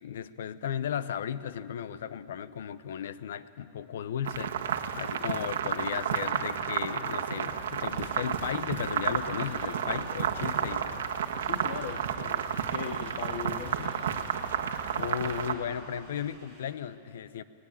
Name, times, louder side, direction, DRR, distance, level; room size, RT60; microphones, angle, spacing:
voice 1, 0.0-4.5 5.0-10.8 15.0-17.4, left 9 dB, 70° left, 15 dB, 0.8 m, -35 dB
sound 1, 4.3-15.5, right 8 dB, 90° right, 1.4 m, -31 dB
sound 2, 7.5-16.6, right 1 dB, ahead, 7.2 m, -49 dB
voice 2, 11.4-14.0, left 8 dB, 45° left, 8 dB, 0.9 m, -39 dB
20.5 x 19.0 x 8.8 m, 2.7 s
supercardioid pair, 175°, 0 cm